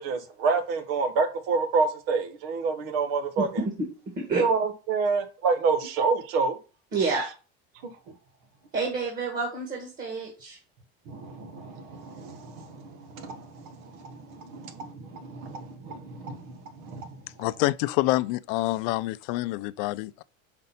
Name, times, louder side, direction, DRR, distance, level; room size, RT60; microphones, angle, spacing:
voice 1, 0.0-3.6 4.3-6.6 7.0-7.2 7.8-8.1 11.1-17.2, right 4 dB, 70° right, 1.3 m, -29 dB
voice 2, 3.4-3.7 4.1-4.4 6.9-7.2 8.7-10.6, right 4 dB, 30° right, 1.8 m, -29 dB
voice 3, 17.4-20.2, left 19 dB, 65° left, 0.4 m, -27 dB
5.2 x 4.1 x 5.7 m
cardioid pair, 170°, 30 cm